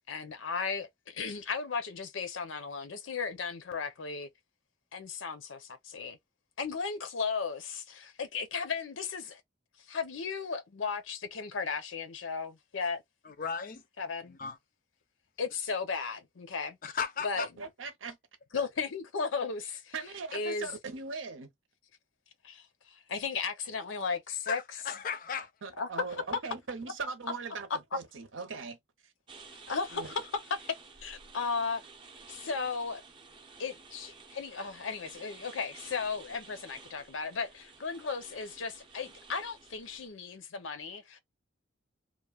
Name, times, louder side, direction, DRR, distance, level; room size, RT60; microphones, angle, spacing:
voice 1, 0.1-4.3 4.9-6.2 6.6-9.4 9.9-13.0 14.0-14.4 15.4-16.8 17.2-17.4 18.5-19.9 20.3-20.7 22.4-24.6 25.8-25.9 29.7-30.1 30.6-30.8 31.0-31.8 32.3-33.0 33.6-41.2, left 5 dB, 85° left, 0.6 m, -35 dB
voice 2, 13.2-13.8 14.3-14.6 16.8-17.5 18.5-18.7 24.5-25.5, left 6 dB, 45° left, 0.4 m, -36 dB
voice 3, 17.4-18.2 19.9-21.5 25.6-29.1 29.9-30.2, right 4 dB, 85° right, 0.7 m, -40 dB
sound 1, 29.3-40.1, right 4 dB, 25° right, 0.5 m, -52 dB
3.0 x 2.1 x 2.3 m
head